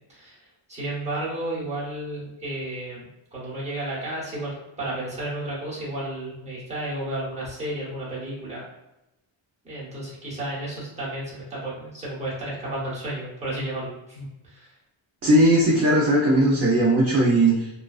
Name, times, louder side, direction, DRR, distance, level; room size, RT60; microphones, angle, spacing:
voice 1, 0.1-0.4 0.7-8.6 9.6-14.7, right 1 dB, 15° right, -7 dB, 0.8 m, -32 dB
voice 2, 15.2-17.7, right 1 dB, 35° right, -6 dB, 0.4 m, -18 dB
2.4 x 2.2 x 2.3 m, 0.93 s
wide cardioid pair, 165°, 50 cm